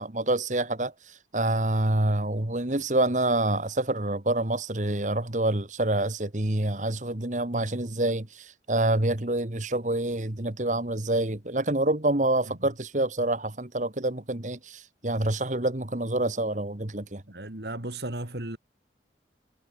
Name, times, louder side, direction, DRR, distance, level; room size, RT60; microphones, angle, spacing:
voice 1, 0.0-17.2, right 2 dB, 45° right, 1.8 m, -27 dB
voice 2, 17.3-18.6, right 1 dB, 70° right, 3.2 m, -35 dB
head